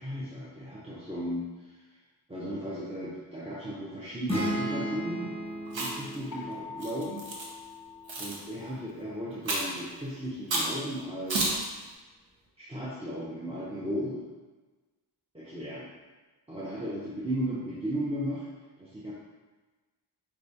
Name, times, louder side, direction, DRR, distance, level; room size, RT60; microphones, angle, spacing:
voice 1, 0.0-1.4 2.3-5.3 5.7-7.2 8.2-11.6 12.6-14.2 15.3-15.9 16.5-18.4 18.8-19.1, equal, 15° right, -8 dB, 0.6 m, -35 dB
sound 1, 4.3-8.0, right 1 dB, 10° left, 1.0 m, -35 dB
Chewing mastication, 5.7-6.1 6.8-7.5 8.1-8.4 9.5-9.8 10.5-10.7 11.3-11.7, right 2 dB, 85° right, 0.7 m, -30 dB
sound 2, 6.3-9.1, left 6 dB, 45° left, 0.5 m, -45 dB
4.7 x 2.3 x 2.6 m, 1.3 s
wide cardioid pair, 60°, 44 cm